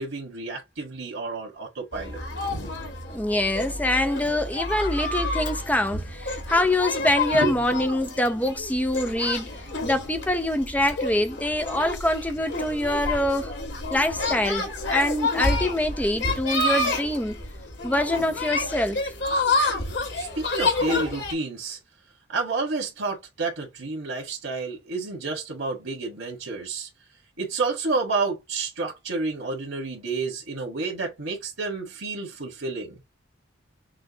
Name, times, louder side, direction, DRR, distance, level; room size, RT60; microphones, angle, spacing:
voice 1, 0.0-2.2 7.3-7.5 20.1-21.8 22.3-26.9 27.4-33.0, right 3 dB, 90° right, 1.8 m, -30 dB
sound 1, 1.9-21.3, left 2 dB, 60° left, 2.1 m, -29 dB
voice 2, 3.1-9.5 9.8-13.5 13.9-17.4 17.8-19.1, left 1 dB, 10° left, 0.7 m, -25 dB
6.0 x 2.6 x 3.0 m
head